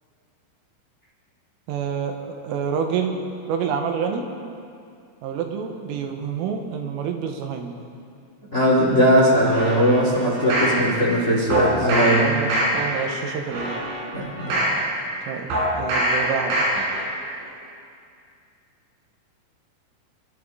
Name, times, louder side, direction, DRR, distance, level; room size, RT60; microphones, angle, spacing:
voice 1, 1.7-3.2 3.5-4.2 5.2-7.8 11.8-13.8 15.3-15.5 15.7-16.7, right 6 dB, 80° right, 4 dB, 3.6 m, -28 dB
voice 2, 8.5-12.2 14.1-14.6, equal, 60° left, -4 dB, 0.7 m, -19 dB
sound 1, 9.5-10.8 11.5-12.2 12.5-13.0 13.5-14.8 15.5-16.2 16.5-17.0 17.4-17.5, right 1 dB, 65° right, 6.2 m, -24 dB
28.5 x 12.0 x 3.8 m, 2.4 s
omnidirectional pair, 6.0 m